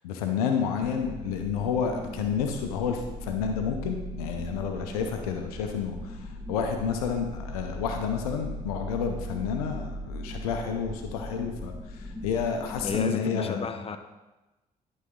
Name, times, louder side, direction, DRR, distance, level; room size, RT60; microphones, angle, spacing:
voice 1, 0.0-6.1 6.5-11.7 12.2-13.6, left 6 dB, 85° left, 5 dB, 0.7 m, -30 dB
sound 1, 0.8-13.0, left 1 dB, ahead, 1.3 m, -39 dB
voice 2, 12.8-14.0, left 5 dB, 30° left, 8 dB, 0.8 m, -31 dB
11.0 x 4.1 x 3.8 m, 1.1 s
hypercardioid pair, 50°, 19 cm